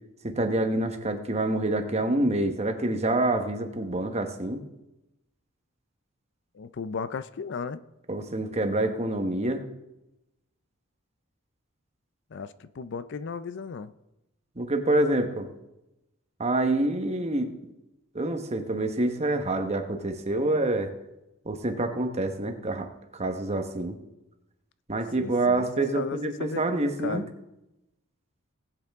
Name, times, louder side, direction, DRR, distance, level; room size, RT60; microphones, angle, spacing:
voice 1, 0.2-4.6 8.1-9.7 14.6-15.5 16.4-17.5 18.1-20.9 21.4-24.0 24.9-27.2, right 2 dB, 30° right, 6 dB, 1.1 m, -27 dB
voice 2, 6.5-7.8 12.3-13.9 25.2-25.7 25.9-27.3, left 5 dB, 55° left, 14 dB, 0.5 m, -35 dB
18.5 x 8.2 x 3.6 m, 0.92 s
head